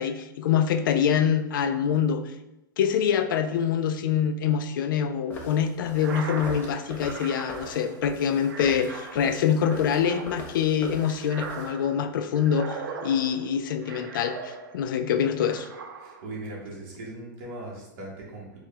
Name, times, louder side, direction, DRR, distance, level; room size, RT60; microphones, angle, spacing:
voice 1, 0.0-2.3 2.8-15.7, left 8 dB, 75° left, 9 dB, 0.4 m, -25 dB
footsteps on sidewalk - actions, 5.3-11.7, left 2 dB, 15° left, 0.5 m, -41 dB
sci-fi transition, 5.9-15.0 15.4-16.4, right 5 dB, 85° right, 0.6 m, -40 dB
voice 2, 16.0-18.6, right 2 dB, 40° right, -4 dB, 1.2 m, -39 dB
4.6 x 2.3 x 3.2 m, 0.90 s
supercardioid pair, 165°, 11 cm